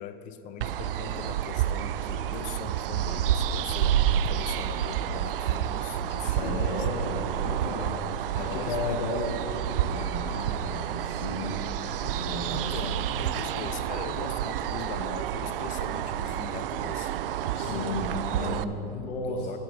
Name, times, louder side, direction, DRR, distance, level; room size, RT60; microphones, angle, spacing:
voice 1, 0.0-6.9 7.4-9.0 9.4-9.5 12.5-17.1 17.6-19.6, left 10 dB, 25° left, 11 dB, 0.5 m, -41 dB
sound 1, 0.6-18.6, right 10 dB, 70° right, 0.4 m, -29 dB
voice 2, 6.2-8.0 8.3-13.0 17.4-19.6, left 2 dB, 65° left, -5 dB, 1.7 m, -34 dB
16.0 x 7.8 x 3.2 m, 2.7 s
hypercardioid pair, 120°, 29 cm